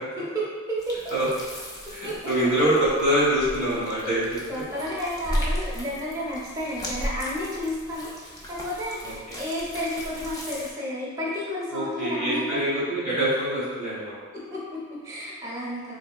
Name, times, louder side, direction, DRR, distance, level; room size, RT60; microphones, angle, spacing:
voice 1, 0.2-1.0 2.0-2.5 4.5-12.6 14.3-16.0, equal, 15° right, -6 dB, 0.7 m, -32 dB
sound 1, 0.8-10.7, equal, 15° left, 0.4 m, -35 dB
voice 2, 1.9-4.4 11.7-14.1, right 1 dB, 40° left, -10 dB, 1.3 m, -24 dB
3.4 x 3.2 x 2.3 m, 1.5 s
head